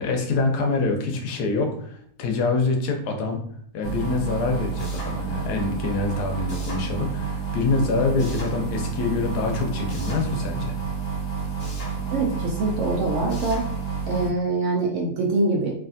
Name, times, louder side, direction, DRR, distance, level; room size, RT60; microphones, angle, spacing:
voice 1, 0.0-3.4 3.7-10.7, left 3 dB, 85° left, 3 dB, 1.2 m, -25 dB
sound 1, 3.8-14.3, right 5 dB, 60° left, 1.2 m, -29 dB
voice 2, 12.1-13.6 14.1-15.7, right 2 dB, 65° right, -1 dB, 0.8 m, -24 dB
3.2 x 2.5 x 2.5 m, 0.64 s
omnidirectional pair, 1.7 m